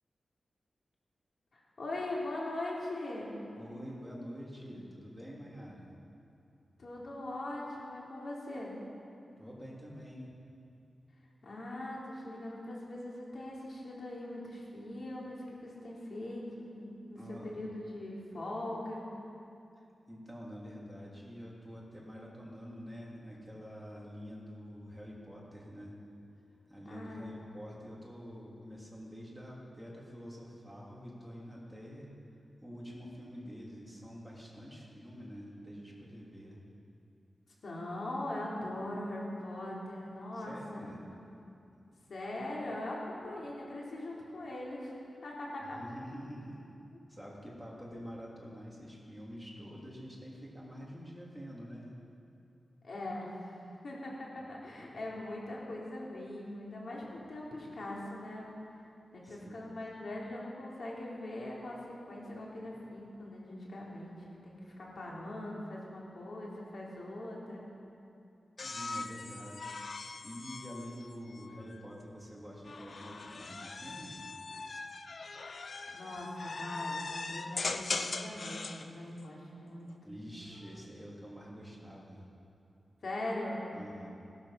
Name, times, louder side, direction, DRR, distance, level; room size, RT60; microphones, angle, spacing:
voice 1, 1.5-3.3 6.8-8.7 11.4-19.1 26.9-27.3 37.6-40.8 42.1-45.0 45.2-45.8 52.8-53.6 53.8-58.5 59.1-61.8 62.1-64.2 64.4-67.6 75.9-79.9 83.0-83.6, left 1 dB, 65° left, -4 dB, 3.7 m, -41 dB
voice 2, 3.6-5.9 9.4-10.4 17.2-17.5 20.1-25.9 26.7-32.1 32.6-36.6 40.3-41.0 45.7-46.7 47.1-51.9 54.8-55.1 59.2-59.6 60.0-60.1 68.6-69.7 70.2-74.2 80.0-82.2 83.7-84.1, equal, ahead, -5 dB, 3.2 m, -47 dB
sound 1, 68.6-71.8 72.6-78.9 80.3-80.8, left 3 dB, 50° left, 0.6 m, -40 dB
17.5 x 12.5 x 5.9 m, 2.6 s
wide cardioid pair, 140°, 0 cm